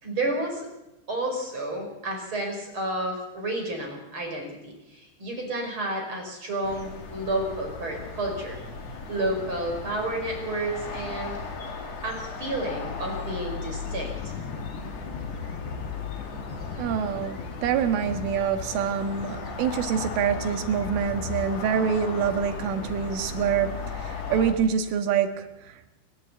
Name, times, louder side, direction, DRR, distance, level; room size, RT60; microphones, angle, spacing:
voice 1, 0.0-0.7 1.1-8.6 9.1-11.4 12.0-14.1, right 1 dB, 25° right, 2 dB, 5.5 m, -31 dB
sound 1, 6.6-24.5, left 5 dB, 45° left, 2.7 m, -36 dB
Thunder / Rain, 13.8-24.4, left 5 dB, 70° left, 4.5 m, -42 dB
voice 2, 16.8-25.9, right 7 dB, 85° right, 7 dB, 4.2 m, -26 dB
29.0 x 11.5 x 8.4 m, 0.91 s
omnidirectional pair, 5.5 m